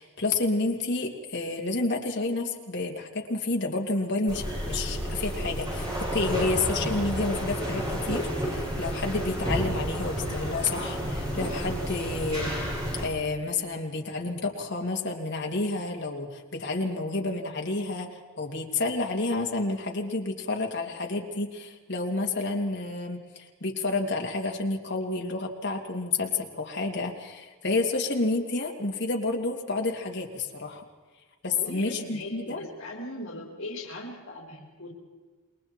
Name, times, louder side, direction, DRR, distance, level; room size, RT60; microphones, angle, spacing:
voice 1, 0.0-12.5 13.0-30.8 31.4-32.7, left 3 dB, 55° left, 1 dB, 2.9 m, -30 dB
sound 1, 4.3-13.1, equal, 20° right, 6.2 m, -31 dB
voice 2, 31.5-34.9, left 1 dB, 80° left, -2 dB, 4.1 m, -39 dB
28.5 x 22.0 x 4.6 m, 1.3 s
head